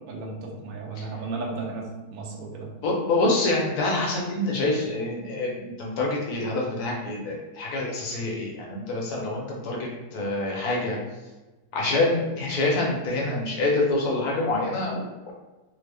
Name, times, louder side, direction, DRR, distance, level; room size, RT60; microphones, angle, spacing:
voice 1, 0.1-2.7, right 3 dB, 65° right, -1 dB, 0.8 m, -34 dB
voice 2, 2.8-11.0 11.7-15.3, left 2 dB, 65° left, -2 dB, 1.1 m, -26 dB
3.4 x 2.0 x 3.2 m, 1.1 s
omnidirectional pair, 2.0 m